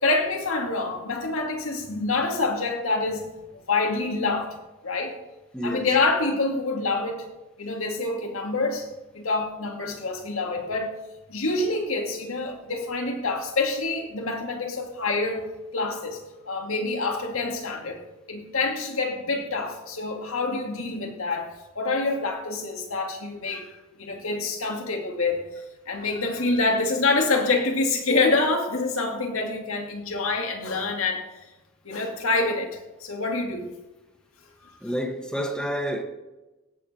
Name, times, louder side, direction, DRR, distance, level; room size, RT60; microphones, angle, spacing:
voice 1, 0.0-4.5 4.8-5.2 5.6-7.2 7.6-8.9 9.1-10.9 11.3-15.5 15.7-18.0 18.3-31.2 31.8-33.7 34.6-34.7, left 3 dB, 80° left, 2.3 m, -26 dB
voice 2, 5.5-5.9 34.8-36.0, equal, 5° left, 1.3 m, -29 dB
16.5 x 7.2 x 4.3 m
head